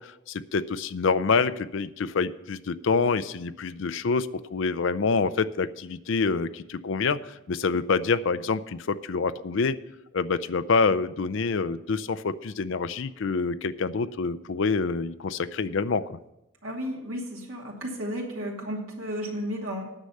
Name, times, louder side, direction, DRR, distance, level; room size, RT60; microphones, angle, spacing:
voice 1, 0.0-9.7 10.1-16.0, left 4 dB, 60° left, 14 dB, 0.4 m, -26 dB
voice 2, 16.6-19.8, equal, 80° right, -1 dB, 2.7 m, -33 dB
9.8 x 6.5 x 8.4 m, 0.91 s
head